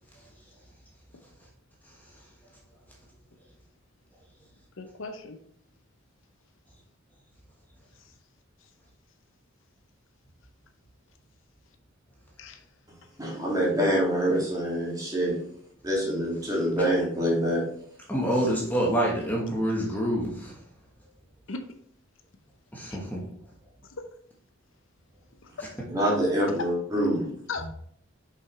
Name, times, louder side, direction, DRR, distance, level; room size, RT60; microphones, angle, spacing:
voice 1, 4.8-5.4 8.0-8.1 12.4-12.6 21.5-21.7 22.9-23.0 23.8-24.1 25.4-25.7 27.5-27.7, left 3 dB, 70° left, 6 dB, 0.7 m, -38 dB
voice 2, 12.9-15.5 15.8-17.6 25.9-27.5, equal, 20° right, -4 dB, 2.3 m, -26 dB
voice 3, 18.1-20.5 22.7-23.2, equal, 10° left, -3 dB, 1.2 m, -26 dB
6.4 x 5.6 x 3.2 m, 0.64 s
head